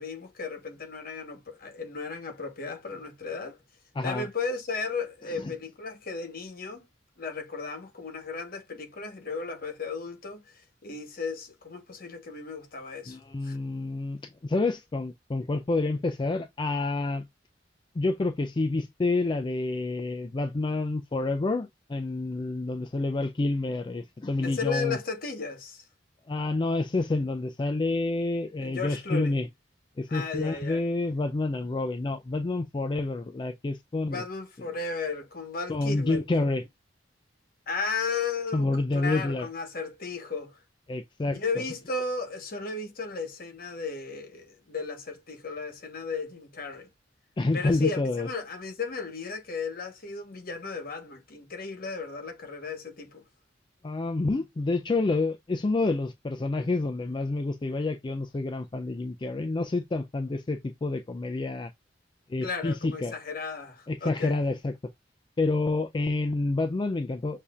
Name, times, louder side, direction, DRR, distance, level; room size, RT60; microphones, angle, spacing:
voice 1, 0.0-3.6 4.0-6.8 7.2-13.6 24.4-25.8 28.6-29.4 30.1-30.8 34.0-36.2 37.7-40.6 41.3-46.9 47.5-53.2 62.4-64.4, left 4 dB, 55° left, 1.1 m, -35 dB
voice 2, 4.0-4.3 5.4-5.5 13.1-17.2 18.0-25.0 26.3-29.5 30.0-34.2 35.7-36.6 38.5-39.5 40.9-41.4 47.4-48.3 53.8-61.7 62.3-63.1 63.9-64.7 65.4-67.4, left 2 dB, 25° left, 0.4 m, -28 dB
6.6 x 2.7 x 2.3 m
head